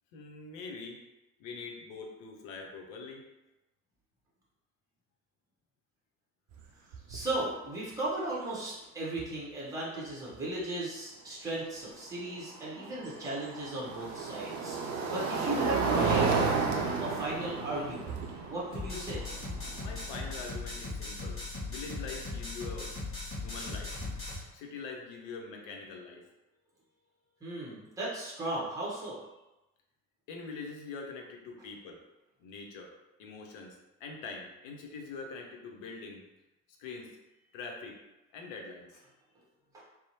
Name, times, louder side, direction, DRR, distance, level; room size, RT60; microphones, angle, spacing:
voice 1, 0.1-1.0 1.4-3.2 19.7-22.9 23.4-23.9 24.5-26.2 30.3-32.0 32.4-32.9 33.2-36.2 36.8-37.1 37.5-38.0 38.3-39.0, left 4 dB, 60° left, 1 dB, 0.6 m, -43 dB
sound 1, 6.5-6.6 6.9-7.4 9.2-9.3 12.3-20.4, right 4 dB, 50° right, 0.5 m, -32 dB
voice 2, 7.1-14.8 15.1-16.6 17.0-19.2 27.4-29.2 39.7-39.8, right 2 dB, 10° right, -7 dB, 0.9 m, -36 dB
sound 2, 18.7-24.4, left 3 dB, 30° left, 1.1 m, -38 dB
2.7 x 2.0 x 2.8 m, 1.0 s
figure-of-eight pair, 60°, 44 cm